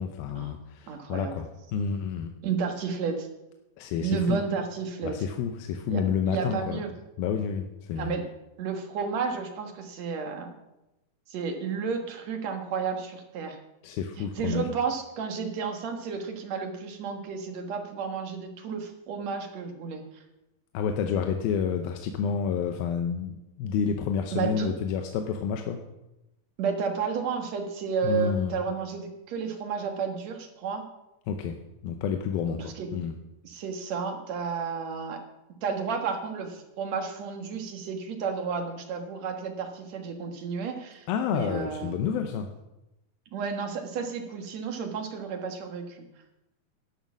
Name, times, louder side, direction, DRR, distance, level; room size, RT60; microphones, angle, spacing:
voice 1, 0.0-2.3 3.8-4.4 5.0-6.8 7.2-8.2 13.8-14.7 20.7-25.8 28.0-28.5 31.3-31.6 31.8-33.1 41.1-42.5, left 7 dB, 90° left, 5 dB, 2.7 m, -29 dB
voice 2, 0.9-1.4 2.4-3.3 4.0-5.2 5.9-6.9 8.0-8.2 8.6-10.5 11.3-13.6 14.2-20.0 24.3-24.7 26.6-30.8 32.5-32.9 33.4-35.2 35.6-42.2 43.3-46.1, right 5 dB, 55° right, 4 dB, 2.4 m, -32 dB
12.0 x 11.0 x 6.2 m, 0.94 s
omnidirectional pair, 4.1 m